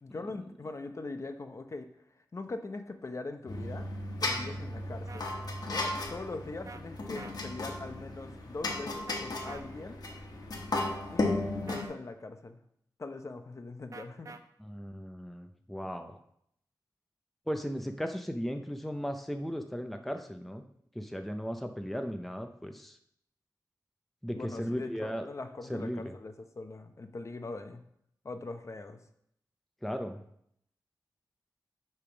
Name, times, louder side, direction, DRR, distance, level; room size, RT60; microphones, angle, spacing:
voice 1, 0.0-1.9 2.3-3.9 4.2-5.3 5.7-10.0 11.1-12.6 13.0-14.4 24.3-27.8 28.2-29.0, left 3 dB, 40° left, 7 dB, 0.7 m, -41 dB
sound 1, 3.5-11.9, left 2 dB, 65° left, 1.4 m, -35 dB
sound 2, 5.1-5.2 6.7-6.8 7.2-7.3 8.7-8.8 9.1-9.6 10.7-11.0 11.7-12.0 13.9-14.4, right 4 dB, 50° right, 0.6 m, -46 dB
voice 2, 14.6-16.2 17.5-20.6 20.9-23.0 24.2-25.3 25.7-26.1 29.8-30.2, equal, ahead, 6 dB, 0.5 m, -36 dB
8.3 x 3.5 x 5.9 m, 0.71 s
wide cardioid pair, 95°, 7 cm